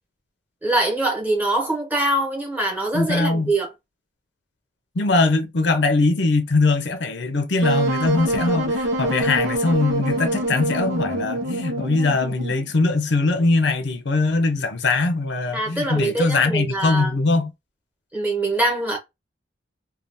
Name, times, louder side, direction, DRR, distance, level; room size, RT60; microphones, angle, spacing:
voice 1, 0.6-3.7 15.5-17.1 18.1-19.0, right 2 dB, 10° right, 1.1 m, -23 dB
voice 2, 2.9-3.5 5.0-17.5, left 3 dB, 60° left, 0.6 m, -21 dB
Wind instrument woodwind instrument, 7.6-12.7, right 1 dB, 85° right, 0.7 m, -25 dB
2.6 x 2.4 x 3.3 m
head